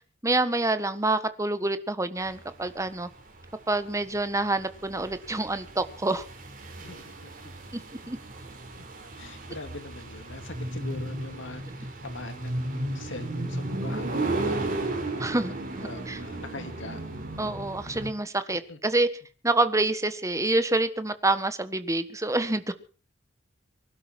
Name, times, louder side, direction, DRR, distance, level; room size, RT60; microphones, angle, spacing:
voice 1, 0.2-3.1 3.7-6.2 8.1-8.2 15.2-16.2 17.4-19.1 19.4-22.7, right 2 dB, 15° right, 12 dB, 1.4 m, -27 dB
sound 1, 2.3-18.1, right 2 dB, 45° right, 4.3 m, -34 dB
voice 2, 6.8-7.5 8.8-8.9 9.2-14.8 15.8-17.0 18.7-18.8, left 2 dB, 65° left, 8 dB, 2.3 m, -43 dB
24.0 x 12.0 x 4.4 m, 0.39 s
head